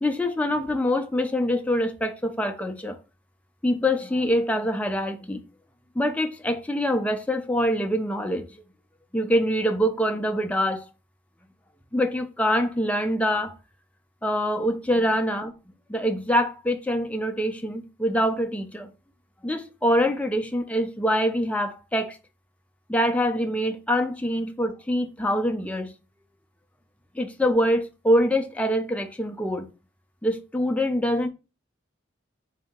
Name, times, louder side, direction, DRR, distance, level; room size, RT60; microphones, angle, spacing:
voice 1, 0.0-3.0 3.6-5.4 6.0-8.5 9.1-10.8 11.9-13.5 14.2-15.5 15.9-18.9 19.4-22.2 22.9-25.9 27.1-29.7 30.2-31.3, equal, 5° left, 0.4 m, -24 dB
3.9 x 2.7 x 3.6 m
head